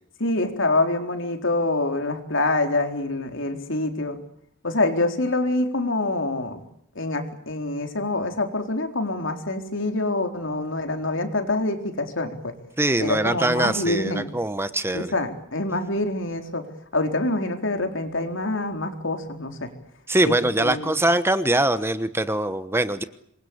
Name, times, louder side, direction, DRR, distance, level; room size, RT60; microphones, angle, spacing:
voice 1, 0.2-4.2 4.6-6.6 7.0-12.5 13.0-14.3 14.9-16.6 16.9-19.7 20.2-20.9, left 2 dB, 65° left, 6 dB, 4.1 m, -26 dB
voice 2, 12.8-15.1 20.1-23.0, right 1 dB, 10° right, 12 dB, 1.1 m, -23 dB
27.0 x 23.0 x 8.7 m, 0.71 s
head